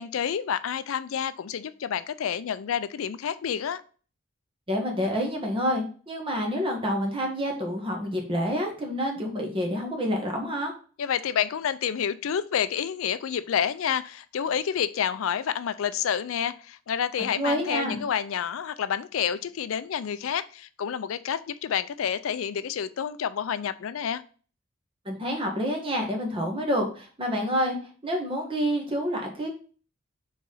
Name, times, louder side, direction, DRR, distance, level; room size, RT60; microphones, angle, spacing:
voice 1, 0.0-3.8 11.0-24.2, left 8 dB, 75° left, 14 dB, 0.4 m, -29 dB
voice 2, 4.7-10.7 17.4-18.0 25.0-27.8 28.0-29.5, equal, 25° right, 1 dB, 1.5 m, -28 dB
4.7 x 4.1 x 5.5 m, 0.40 s
head